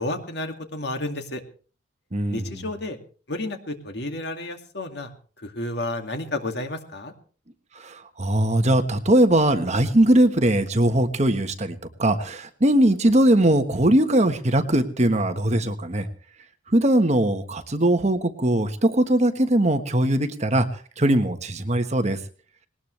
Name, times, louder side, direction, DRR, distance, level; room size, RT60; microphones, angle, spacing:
voice 1, 0.0-1.4 2.3-3.0 3.3-5.1 5.4-7.1, left 2 dB, 60° left, 5 dB, 2.3 m, -31 dB
voice 2, 2.1-2.5 7.8-16.1 16.7-20.7 21.0-22.2, right 1 dB, 35° right, 8 dB, 1.3 m, -20 dB
20.0 x 19.0 x 3.3 m, 0.41 s
head